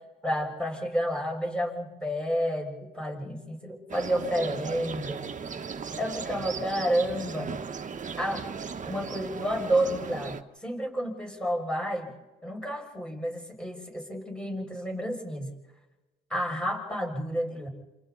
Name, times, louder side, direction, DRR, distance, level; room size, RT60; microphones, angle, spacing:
voice 1, 0.2-5.3 6.0-7.5 8.2-8.5 8.9-12.1 12.4-15.5 16.3-17.7, equal, 5° left, 0 dB, 6.9 m, -30 dB
sound 1, 3.9-10.4, right 5 dB, 40° right, 1.4 m, -37 dB
28.0 x 28.0 x 4.2 m, 1.1 s
cardioid pair, 90°, 20 cm